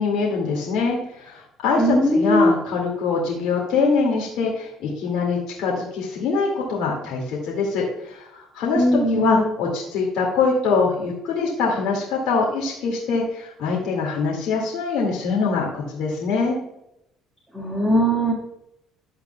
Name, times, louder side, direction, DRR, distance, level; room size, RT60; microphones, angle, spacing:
voice 1, 0.0-16.6, left 4 dB, 75° left, -2 dB, 2.1 m, -23 dB
voice 2, 1.8-2.5 8.7-9.5 17.5-18.3, equal, 5° right, -3 dB, 1.9 m, -19 dB
11.5 x 8.0 x 2.3 m, 0.80 s
cardioid pair, 100°, 0 cm